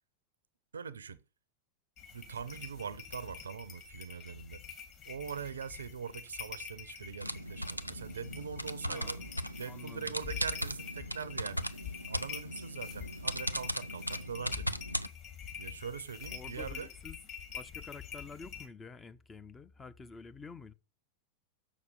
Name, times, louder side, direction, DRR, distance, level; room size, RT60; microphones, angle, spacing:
voice 1, 0.7-1.2 2.1-4.6 5.1-9.2 9.6-11.8 12.1-14.8 15.6-16.9, right 6 dB, 70° right, 0.5 m, -42 dB
sound 1, 2.0-18.7, left 7 dB, 35° left, 2.8 m, -47 dB
sound 2, 7.2-15.1, equal, 90° left, 0.5 m, -38 dB
voice 2, 8.8-9.2 9.6-10.1 16.3-17.2 17.5-20.7, left 4 dB, 15° left, 0.6 m, -49 dB
7.0 x 6.3 x 6.9 m
figure-of-eight pair, 90°, 0 cm